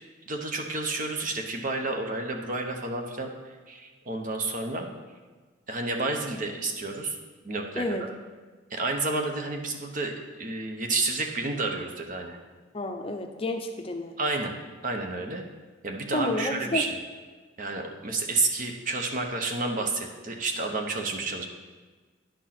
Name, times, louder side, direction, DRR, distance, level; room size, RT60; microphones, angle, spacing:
voice 1, 0.3-4.9 5.7-7.2 7.4-8.1 8.7-12.4 14.2-14.5 14.8-15.4 15.8-17.0 17.6-21.5, right 3 dB, 40° right, 3 dB, 0.9 m, -30 dB
voice 2, 7.8-8.1 12.7-14.1 16.1-16.8, left 2 dB, 30° left, 4 dB, 0.6 m, -30 dB
10.5 x 4.5 x 5.8 m, 1.4 s
head